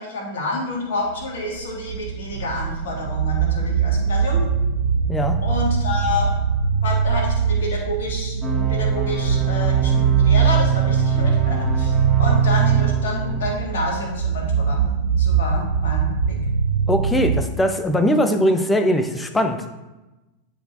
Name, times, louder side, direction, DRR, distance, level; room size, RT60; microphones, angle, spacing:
voice 1, 0.0-4.4 5.4-6.3 6.8-14.8 15.2-16.4, left 2 dB, 60° left, -1 dB, 1.8 m, -29 dB
sound 1, 1.1-17.4, right 6 dB, 70° right, 0.4 m, -22 dB
sound 2, 8.4-13.4, right 9 dB, 15° right, 1.4 m, -23 dB
voice 2, 16.9-19.7, equal, 10° left, 7 dB, 0.6 m, -20 dB
9.9 x 4.5 x 2.6 m, 1.1 s
figure-of-eight pair, 90°, 0 cm